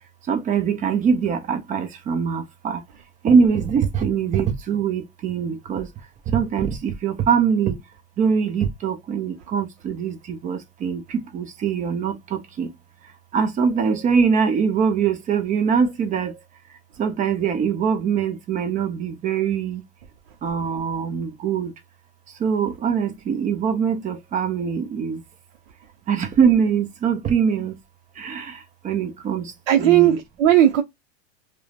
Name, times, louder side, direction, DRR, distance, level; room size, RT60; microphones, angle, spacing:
voice 1, 0.3-2.8 3.2-5.9 6.3-7.8 8.2-12.7 13.3-16.3 17.0-19.8 20.4-21.7 22.4-25.2 26.1-27.7 28.2-28.6 28.8-29.5 29.8-30.2, right 6 dB, 20° right, 0.5 m, -22 dB
voice 2, 29.7-30.8, right 12 dB, 60° right, 0.6 m, -16 dB
3.0 x 2.1 x 2.3 m
supercardioid pair, 125°, 38 cm